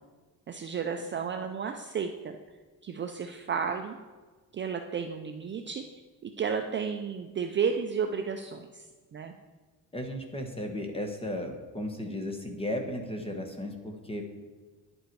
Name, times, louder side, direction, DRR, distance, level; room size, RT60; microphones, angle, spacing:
voice 1, 0.5-2.4 2.8-4.0 4.5-8.9 9.1-9.3, right 6 dB, 30° right, 5 dB, 0.5 m, -32 dB
voice 2, 9.9-14.2, left 1 dB, 15° left, 4 dB, 1.3 m, -35 dB
10.5 x 7.8 x 4.7 m, 1.3 s
cardioid pair, 140°, 40 cm